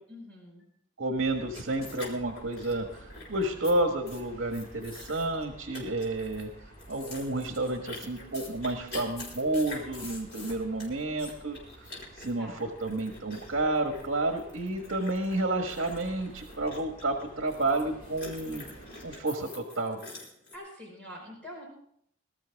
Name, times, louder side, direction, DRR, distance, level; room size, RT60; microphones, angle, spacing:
voice 1, 0.1-0.7 12.3-12.6 20.5-21.7, left 1 dB, 5° left, -3 dB, 5.0 m, -45 dB
voice 2, 1.0-6.5 6.9-11.6 12.2-18.6 19.0-20.0, right 2 dB, 65° right, 4 dB, 1.5 m, -30 dB
sound 1, 1.2-19.1, right 1 dB, 30° left, 4.8 m, -51 dB
sound 2, 1.5-3.7 4.0-4.2 4.5-5.4 5.7-6.4 6.7-17.8 18.2-20.6, left 2 dB, 55° left, 4.7 m, -45 dB
21.0 x 13.0 x 3.5 m, 0.68 s
head